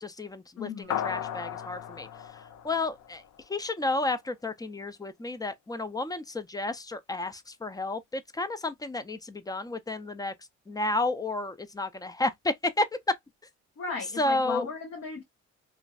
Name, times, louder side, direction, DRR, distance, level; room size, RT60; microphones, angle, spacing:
voice 1, 0.0-2.1 2.6-3.2 3.5-10.3 10.7-13.2 14.2-14.7, left 2 dB, 15° left, 0.4 m, -31 dB
voice 2, 0.6-1.0 13.8-15.2, left 5 dB, 55° left, 0.9 m, -36 dB
sound 1, 0.9-3.6, left 10 dB, 80° left, 0.5 m, -36 dB
3.0 x 2.5 x 2.3 m
cardioid pair, 90°, 30 cm